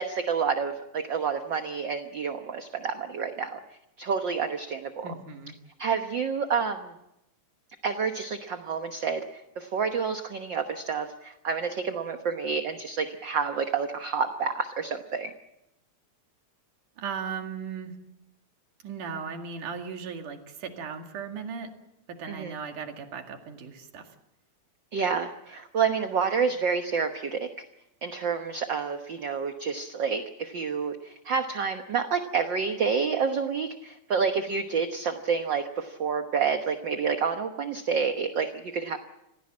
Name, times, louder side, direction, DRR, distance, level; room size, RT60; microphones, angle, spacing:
voice 1, 0.0-3.6 4.0-5.1 5.8-6.9 7.8-15.3 22.3-22.5 24.9-27.5 28.0-39.0, right 5 dB, 55° right, 6 dB, 1.3 m, -29 dB
voice 2, 5.0-5.6 17.0-18.0 18.8-21.7 22.1-24.1, right 6 dB, 85° right, 4 dB, 3.7 m, -37 dB
27.0 x 17.5 x 7.5 m, 0.85 s
omnidirectional pair, 3.5 m